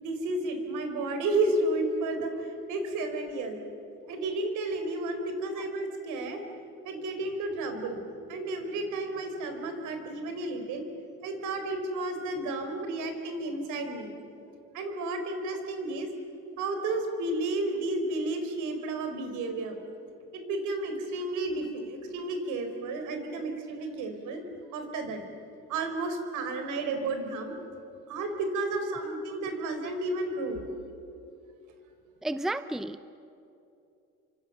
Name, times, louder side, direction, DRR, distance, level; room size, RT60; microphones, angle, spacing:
voice 1, 0.0-3.6 4.1-6.4 6.8-8.0 8.3-10.8 11.2-14.1 14.7-16.1 16.6-19.8 20.3-24.4 24.7-25.2 25.7-27.6 28.1-30.6, right 2 dB, 70° right, 6 dB, 4.4 m, -32 dB
voice 2, 32.2-33.1, right 1 dB, ahead, 12 dB, 0.7 m, -33 dB
28.5 x 25.0 x 6.8 m, 2.7 s
cardioid pair, 105°, 31 cm